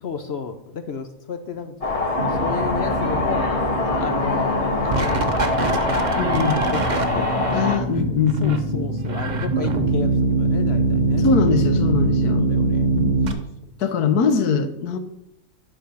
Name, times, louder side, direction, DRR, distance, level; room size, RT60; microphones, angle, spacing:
voice 1, 0.0-7.6 7.9-11.2 11.9-12.9 13.3-13.5, left 5 dB, 60° left, 8 dB, 0.7 m, -33 dB
sound 1, 1.8-7.8, left 3 dB, 20° left, 1.6 m, -24 dB
sound 2, 2.2-13.3, right 2 dB, 40° right, 0.6 m, -23 dB
voice 2, 6.2-6.6 7.5-8.9 11.2-12.4 13.8-15.0, left 6 dB, 80° left, 9 dB, 1.3 m, -22 dB
11.0 x 3.9 x 6.2 m, 0.81 s
omnidirectional pair, 1.7 m